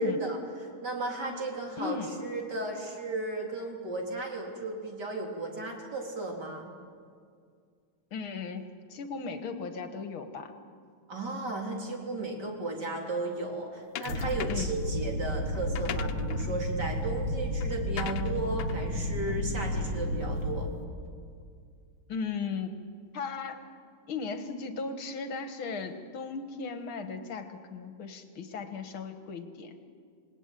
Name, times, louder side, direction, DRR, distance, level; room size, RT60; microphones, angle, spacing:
voice 1, 0.0-6.7 11.1-20.7, right 2 dB, 50° right, 1 dB, 4.2 m, -35 dB
voice 2, 1.8-2.1 8.1-10.5 14.5-14.7 22.1-22.7 23.1-23.6 24.1-29.7, left 5 dB, 70° left, 8 dB, 2.3 m, -36 dB
sound 1, 14.0-14.8 15.5-20.2, left 11 dB, 85° left, 1.8 m, -42 dB
sound 2, 14.1-20.6, equal, 85° right, 4.4 m, -32 dB
28.0 x 19.5 x 9.2 m, 2.2 s
omnidirectional pair, 2.4 m